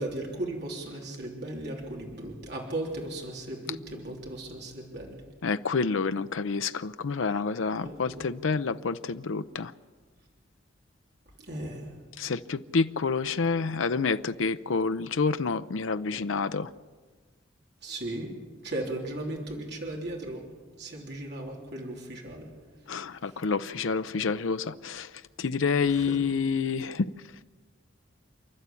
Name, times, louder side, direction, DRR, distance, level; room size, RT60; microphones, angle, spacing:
voice 1, 0.0-5.2 7.8-8.2 11.4-12.0 17.8-18.3 18.6-20.4 20.8-22.5 25.8-26.2, right 1 dB, 55° right, -1 dB, 3.3 m, -36 dB
voice 2, 5.4-9.7 12.2-16.7 22.9-25.1 25.4-27.1, left 4 dB, 80° left, 11 dB, 0.6 m, -28 dB
29.0 x 11.5 x 8.4 m, 1.4 s
head